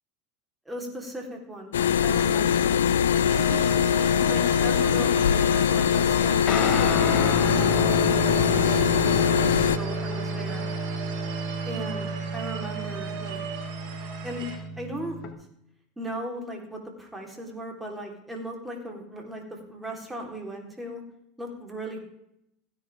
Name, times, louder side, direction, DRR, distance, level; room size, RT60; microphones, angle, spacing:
voice 1, 0.7-3.6 4.3-8.7 9.0-10.6 11.6-13.4 14.2-14.5 14.8-15.2 16.0-21.0 21.4-22.0, right 1 dB, 10° right, 0 dB, 4.1 m, -37 dB
sound 1, 1.7-9.8, left 8 dB, 90° left, 0.5 m, -22 dB
sound 2, 3.3-14.6, right 7 dB, 60° right, 5.7 m, -37 dB
Guitar, 6.5-15.3, left 1 dB, 50° left, 2.2 m, -30 dB
16.0 x 10.5 x 3.7 m, 0.79 s
hypercardioid pair, 95°, 0 cm